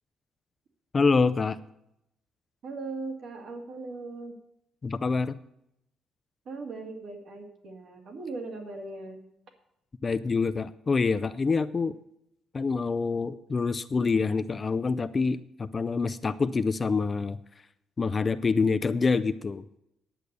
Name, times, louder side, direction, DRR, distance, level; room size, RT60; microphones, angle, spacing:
voice 1, 0.9-1.6 4.8-5.3 10.0-11.9 12.5-17.4 18.0-19.8, left 4 dB, 25° left, 13 dB, 0.4 m, -26 dB
voice 2, 2.6-4.4 6.5-9.2, right 3 dB, 55° right, 2 dB, 2.1 m, -39 dB
10.5 x 8.1 x 6.7 m, 0.80 s
cardioid pair, 145°, 0 cm